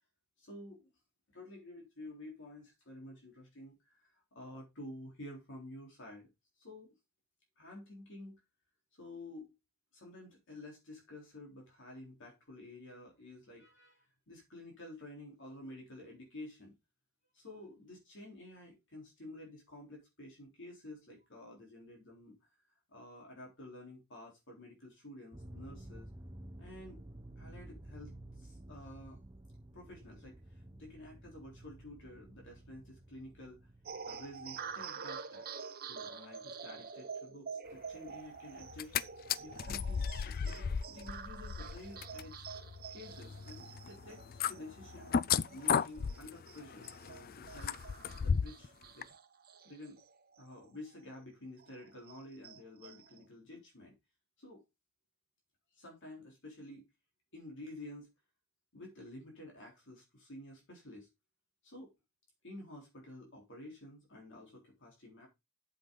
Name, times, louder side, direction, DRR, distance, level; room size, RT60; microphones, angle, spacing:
voice 1, 0.4-0.9 1.3-6.3 6.6-6.9 7.6-8.4 8.9-9.5 9.9-16.7 17.3-22.4 22.9-26.1 26.6-27.0 27.4-29.2 29.7-30.4 30.8-33.6 34.0-35.5 35.8-39.0 39.4-42.5 42.9-44.2 44.5-45.1 45.5-47.8 48.2-49.1 49.6-50.0 50.4-53.9 54.4-54.6 55.7-56.9 57.3-58.1 58.7-61.1 61.6-61.9 62.4-65.3, left 1 dB, 60° left, 3.7 m, -51 dB
sound 1, 25.3-34.9, right 1 dB, 20° right, 0.8 m, -52 dB
sound 2, 33.9-50.8 51.1-51.2 51.6-53.2, right 6 dB, 45° right, 0.9 m, -48 dB
sound 3, 38.6-39.0 39.3-48.7 49.0-49.1, left 7 dB, 45° left, 0.4 m, -35 dB
8.5 x 7.6 x 3.8 m
head